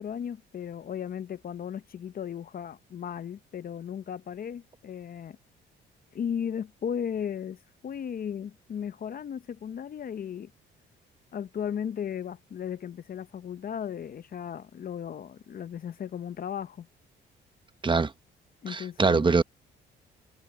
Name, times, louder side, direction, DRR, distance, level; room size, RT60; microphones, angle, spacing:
voice 1, 0.0-5.4 6.1-7.6 7.8-10.5 11.3-16.9 18.6-19.3, left 8 dB, 45° left, 0.7 m, -36 dB
voice 2, 18.7-19.4, right 4 dB, 25° right, 1.0 m, -23 dB
cardioid pair, 90°, 20 cm